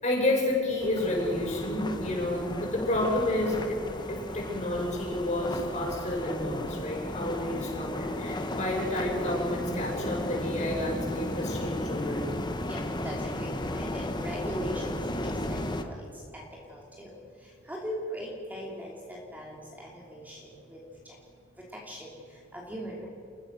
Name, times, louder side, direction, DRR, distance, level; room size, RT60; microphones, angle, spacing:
voice 1, 0.0-3.8 4.1-12.3, left 1 dB, 40° left, -2 dB, 7.0 m, -30 dB
sound 1, 0.8-15.8, left 1 dB, 25° left, 1.3 m, -34 dB
voice 2, 12.7-15.0 15.8-16.0 16.3-16.4 16.7-17.1 17.7-20.8 21.9-22.1 22.5-23.1, equal, 10° right, -3 dB, 3.0 m, -39 dB
29.0 x 15.5 x 6.5 m, 2.4 s
head